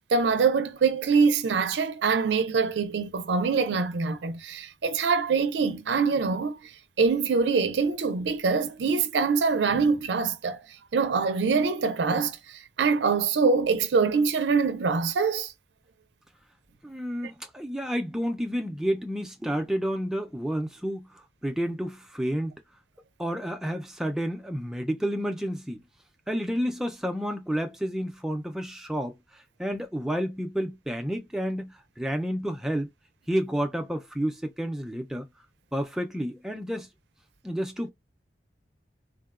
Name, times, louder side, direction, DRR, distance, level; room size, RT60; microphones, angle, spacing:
voice 1, 0.1-6.6 7.0-10.6 10.9-15.5, right 5 dB, 90° right, 0.5 m, -24 dB
voice 2, 16.8-22.6 23.2-25.8 26.3-32.9 33.3-35.3 35.7-36.9 37.4-37.9, equal, 5° right, 0.4 m, -30 dB
3.7 x 2.1 x 2.3 m
head